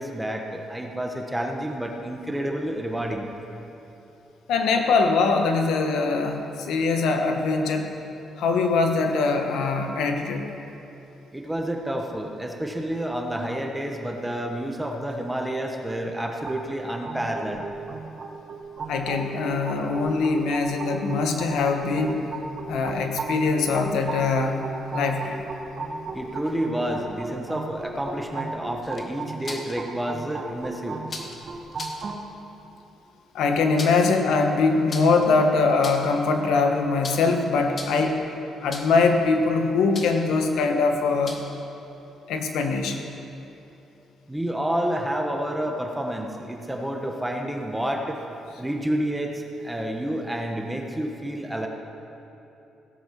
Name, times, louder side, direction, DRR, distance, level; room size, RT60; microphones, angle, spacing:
voice 1, 0.0-3.3 11.3-17.7 26.1-31.0 44.3-48.2 48.6-51.7, right 1 dB, 5° right, 2 dB, 1.2 m, -29 dB
voice 2, 4.5-7.9 8.4-10.5 18.9-22.2 22.7-24.6 24.9-25.4 33.3-38.2 38.6-41.4 42.3-43.0, left 4 dB, 80° left, 4 dB, 1.3 m, -22 dB
sound 1, 16.4-32.2, right 3 dB, 45° right, 1.5 m, -36 dB
sound 2, 28.8-29.7 31.1-31.4 31.7-32.0 33.5-34.2 34.9-35.3 35.7-36.2 37.0-37.3 37.7-38.1 38.7-39.1 39.9-40.3 41.2-41.6, left 3 dB, 40° left, 1.6 m, -37 dB
17.0 x 8.5 x 5.9 m, 3.0 s
cardioid pair, 90°, 0 cm